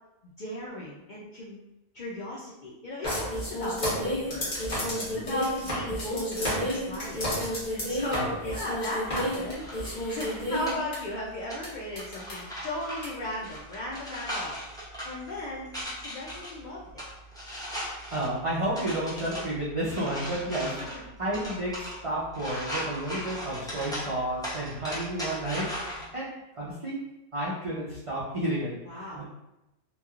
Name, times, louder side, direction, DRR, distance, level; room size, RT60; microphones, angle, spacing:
voice 1, 0.2-1.6 1.9-4.5 5.2-7.3 7.7-14.6 15.0-17.0 20.8-20.9 28.9-29.2, left 1 dB, 65° left, -7 dB, 0.4 m, -36 dB
sound 1, 3.0-11.0 11.6-11.7 12.0-12.3 13.0-13.1, equal, 40° left, 1.0 m, -31 dB
sound 2, 9.2-26.1, equal, 5° left, 0.4 m, -39 dB
voice 2, 18.1-26.3 26.6-27.0 27.3-29.2, right 1 dB, 60° right, -7 dB, 0.3 m, -31 dB
2.9 x 2.3 x 2.3 m, 0.92 s
omnidirectional pair, 1.3 m